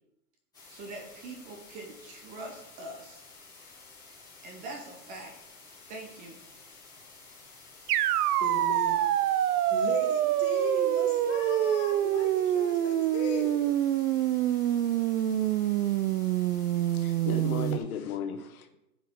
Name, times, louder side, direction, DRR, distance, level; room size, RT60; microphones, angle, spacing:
sound 1, 0.5-17.7, left 3 dB, 10° left, 2.7 m, -52 dB
voice 1, 0.7-3.2 4.4-5.3 5.9-6.4, right 2 dB, 20° right, 0.7 m, -43 dB
sound 2, 7.9-17.8, right 12 dB, 80° right, 0.6 m, -26 dB
voice 2, 8.4-9.0 9.7-13.5, left 5 dB, 50° left, 1.7 m, -37 dB
voice 3, 16.9-18.8, left 7 dB, 70° left, 1.1 m, -35 dB
10.0 x 4.8 x 3.6 m
hypercardioid pair, 150°, 45 cm